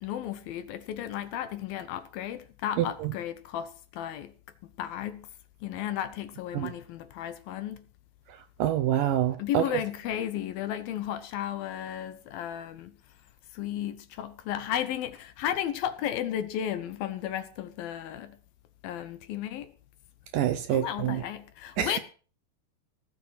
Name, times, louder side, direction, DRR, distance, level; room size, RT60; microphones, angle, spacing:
voice 1, 0.0-4.4 4.6-5.3 5.6-7.9 9.4-13.0 13.5-18.4 18.8-19.7 20.7-22.0, left 11 dB, 70° left, 2.6 m, -34 dB
voice 2, 2.8-3.1 6.5-6.7 8.6-9.6 20.3-21.2 21.8-21.9, right 11 dB, 75° right, 2.2 m, -26 dB
17.5 x 7.4 x 7.5 m
omnidirectional pair, 4.7 m